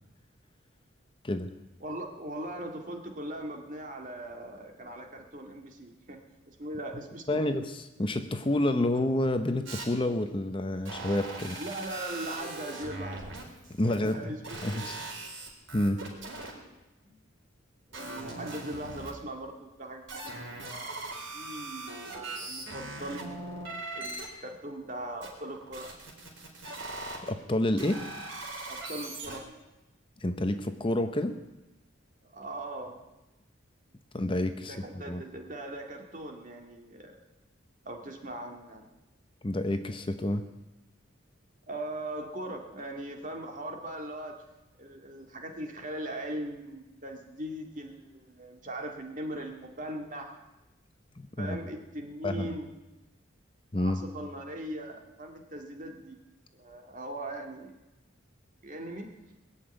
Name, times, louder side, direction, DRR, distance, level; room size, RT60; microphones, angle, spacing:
voice 1, 1.8-7.4 11.6-13.4 13.9-15.0 17.0-17.2 17.9-23.3 24.0-25.9 28.7-29.4 32.2-33.1 34.7-37.2 37.8-38.8 41.7-44.4 44.8-50.4 51.4-52.7 53.8-56.2 56.5-57.8 58.6-59.1, right 1 dB, 40° right, 3 dB, 2.0 m, -40 dB
voice 2, 7.3-11.6 13.8-14.3 14.6-15.1 15.7-16.0 27.2-28.0 30.2-31.4 34.1-34.7 35.1-35.2 39.4-40.4 51.2-51.6 52.2-52.5 53.7-54.0, left 1 dB, 25° left, 8 dB, 0.8 m, -29 dB
sound 1, 9.7-9.8 10.8-14.1 14.4-16.5 17.9-19.1 20.1-24.3 25.2-27.3 27.8-29.4, right 2 dB, 75° right, 4.0 m, -40 dB
21.0 x 7.1 x 8.9 m, 1.0 s
head